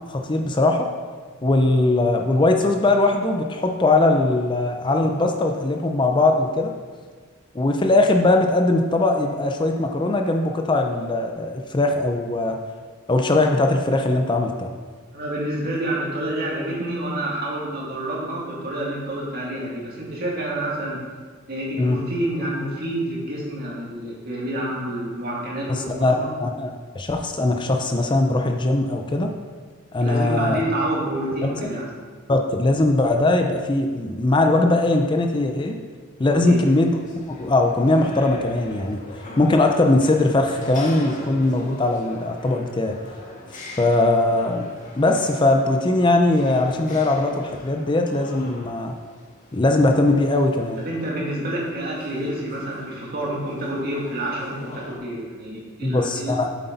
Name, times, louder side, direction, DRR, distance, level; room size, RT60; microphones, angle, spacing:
voice 1, 0.1-0.9 1.4-6.7 7.5-12.6 13.1-14.7 21.8-22.0 25.7-29.3 29.9-30.6 32.3-35.8 36.2-37.0 37.3-39.0 39.4-43.0 43.5-44.7 45.0-49.0 49.5-50.8 55.8-56.5, left 2 dB, 25° left, 3 dB, 0.5 m, -20 dB
voice 2, 15.1-21.0 21.5-26.3 30.0-31.9 36.2-36.6 50.8-56.4, right 1 dB, 50° right, -4 dB, 2.3 m, -28 dB
sound 1, 36.6-55.0, left 1 dB, 40° left, 1.6 m, -42 dB
8.2 x 7.7 x 4.0 m, 1.5 s
head